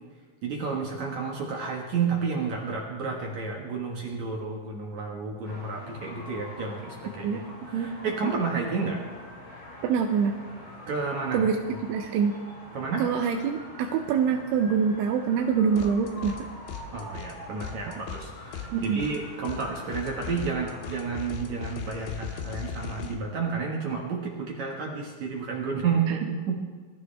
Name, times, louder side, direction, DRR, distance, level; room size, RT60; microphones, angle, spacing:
voice 1, 0.4-9.0 10.9-11.4 12.7-13.1 16.9-26.6, right 5 dB, 55° right, -1 dB, 2.1 m, -31 dB
sound 1, 5.4-20.9, left 1 dB, 30° left, 2.9 m, -45 dB
voice 2, 9.8-10.3 11.3-11.6 11.8-12.3 13.0-16.4 18.7-19.0, right 6 dB, 85° right, 3 dB, 3.2 m, -25 dB
sound 2, 15.8-16.4 16.7-23.1, left 8 dB, 75° left, 3.5 m, -39 dB
22.5 x 14.0 x 3.4 m, 1.5 s
omnidirectional pair, 5.5 m